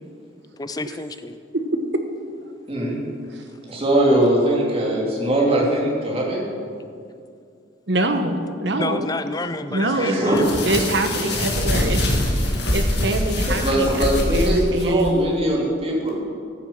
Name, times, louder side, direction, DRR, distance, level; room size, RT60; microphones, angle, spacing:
voice 1, 0.6-1.4 8.7-10.6, left 3 dB, 20° left, 10 dB, 0.5 m, -30 dB
voice 2, 2.7-3.0 3.7-6.5 9.8-10.5 13.4-16.2, right 1 dB, 30° right, -3 dB, 2.7 m, -21 dB
voice 3, 7.9-9.1 9.7-10.3 10.6-12.1 12.7-15.2, right 1 dB, 60° right, 6 dB, 1.1 m, -24 dB
sound 1, 10.3-15.1, left 1 dB, 55° left, 2.1 m, -23 dB
13.5 x 7.5 x 7.1 m, 2.3 s
head